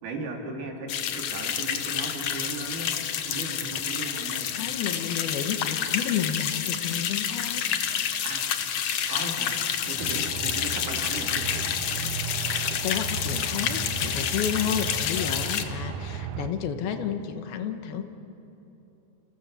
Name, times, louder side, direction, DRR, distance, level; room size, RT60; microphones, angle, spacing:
voice 1, 0.0-2.9 3.3-4.7 8.2-8.5 9.1-9.6 9.9-11.4, right 3 dB, 85° right, 0 dB, 4.9 m, -37 dB
sound 1, 0.9-15.6, left 9 dB, 65° left, 1.7 m, -29 dB
voice 2, 4.0-7.7 9.0-9.1 12.0-12.1 12.5-18.0, left 8 dB, 85° left, 7 dB, 3.1 m, -31 dB
Aircraft, 10.0-16.5, right 7 dB, 70° right, 2.3 m, -35 dB
28.5 x 28.5 x 6.8 m, 3.0 s
omnidirectional pair, 4.3 m